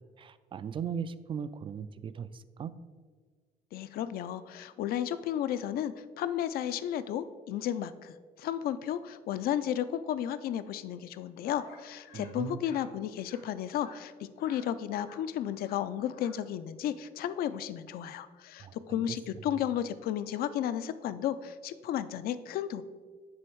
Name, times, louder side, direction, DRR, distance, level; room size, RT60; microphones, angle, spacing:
voice 1, 0.2-2.7 12.1-12.6 18.6-19.2, right 7 dB, 30° right, 14 dB, 0.3 m, -38 dB
voice 2, 3.7-22.8, left 10 dB, 65° left, 13 dB, 0.4 m, -33 dB
sound 1, 11.5-11.8 12.0-12.3 12.6-12.9 13.2-13.4 13.8-14.0 14.4-14.6 14.9-15.2 15.5-15.8 16.0-16.3, left 5 dB, 80° left, 1.6 m, -53 dB
9.6 x 3.5 x 4.5 m, 1.5 s
cardioid pair, 110°, 17 cm